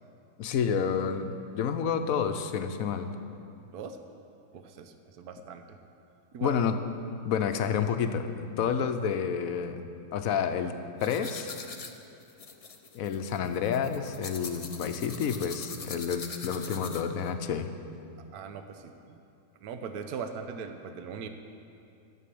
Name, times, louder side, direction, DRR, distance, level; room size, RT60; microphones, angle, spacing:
voice 1, 0.4-3.1 6.4-6.8 7.2-10.7 11.0-11.5 12.9-17.7, left 7 dB, 65° left, 8 dB, 1.1 m, -29 dB
voice 2, 4.5-5.8 6.3-6.6 18.2-19.2 19.6-21.3, right 6 dB, 75° right, 7 dB, 1.2 m, -40 dB
sound 1, 11.0-17.3, left 4 dB, 45° left, 0.4 m, -43 dB
13.0 x 6.8 x 8.5 m, 2.6 s
omnidirectional pair, 1.7 m